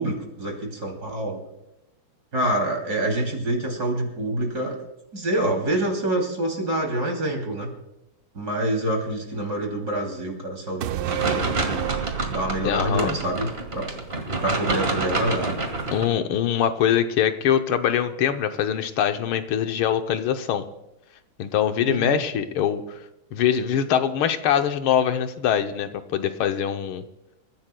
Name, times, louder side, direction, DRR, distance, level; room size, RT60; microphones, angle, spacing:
voice 1, 0.0-1.4 2.3-4.8 5.1-7.7 8.3-11.9 12.3-13.9 14.4-15.6 21.9-22.2, right 1 dB, 45° right, 2 dB, 3.3 m, -26 dB
sound 1, 10.8-14.4 14.7-14.8, right 12 dB, 75° right, 1.5 m, -31 dB
sound 2, 11.1-16.1, right 2 dB, 30° right, 1.8 m, -28 dB
voice 2, 12.6-13.2 15.9-20.6 21.4-23.0 23.3-27.0, left 9 dB, 80° left, 8 dB, 1.6 m, -23 dB
28.0 x 15.0 x 2.2 m, 0.89 s
omnidirectional pair, 2.3 m